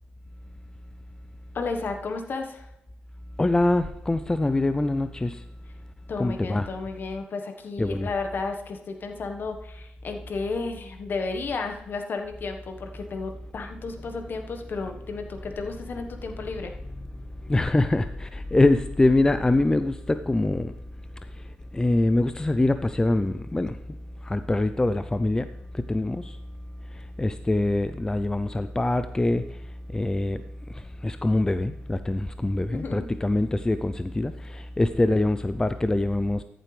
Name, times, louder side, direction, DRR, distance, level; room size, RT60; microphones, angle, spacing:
voice 1, 1.5-2.7 6.1-16.7 32.7-33.1, left 4 dB, 55° left, 5 dB, 1.4 m, -33 dB
voice 2, 3.4-5.4 6.2-6.7 7.8-8.1 17.5-20.7 21.7-23.8 24.3-25.5 25.9-26.3 27.2-29.4 29.9-30.4 31.0-36.4, left 2 dB, 15° left, 11 dB, 0.5 m, -24 dB
14.0 x 7.6 x 3.4 m, 0.84 s
supercardioid pair, 65°, 4 cm